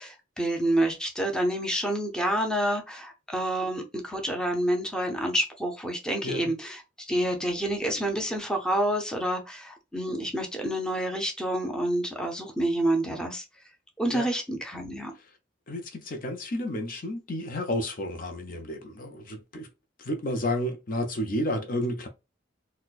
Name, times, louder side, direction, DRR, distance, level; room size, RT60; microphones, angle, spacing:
voice 1, 0.0-6.8 7.1-13.4 14.0-15.1, right 1 dB, 5° left, 0.6 m, -28 dB
voice 2, 15.7-19.7 20.0-22.1, left 1 dB, 45° left, 0.6 m, -31 dB
4.2 x 2.2 x 2.3 m
head